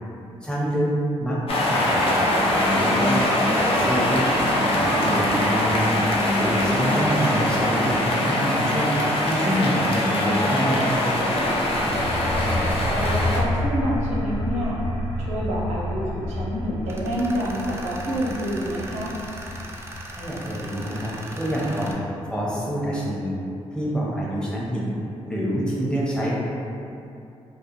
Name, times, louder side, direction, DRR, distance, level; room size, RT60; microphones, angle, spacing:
voice 1, 0.4-0.9 1.2-1.4 1.7-4.3 4.6-5.9 6.3-8.9 9.2-11.3 20.2-22.0 22.3-23.4 23.7-25.0 25.2-26.4, equal, 5° left, -6 dB, 0.7 m, -27 dB
sound 1, 1.5-13.4, left 1 dB, 55° left, 0.5 m, -22 dB
sound 2, 11.1-22.6, left 1 dB, 80° left, 1.2 m, -30 dB
voice 2, 12.4-14.8 15.3-19.1, equal, 80° right, -5 dB, 0.6 m, -28 dB
Tools, 16.9-21.9, right 2 dB, 20° right, 0.4 m, -39 dB
2.3 x 2.2 x 2.9 m, 2.6 s
cardioid pair, 65°, 12 cm